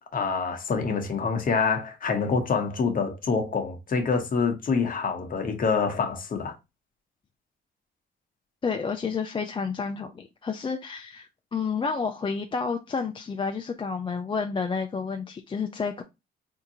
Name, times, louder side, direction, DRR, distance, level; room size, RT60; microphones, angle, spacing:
voice 1, 0.1-6.5, left 5 dB, 45° left, 1.0 m, -26 dB
voice 2, 8.6-16.0, left 5 dB, 25° left, 0.4 m, -30 dB
3.7 x 2.7 x 2.7 m
cardioid pair, 90°, 20 cm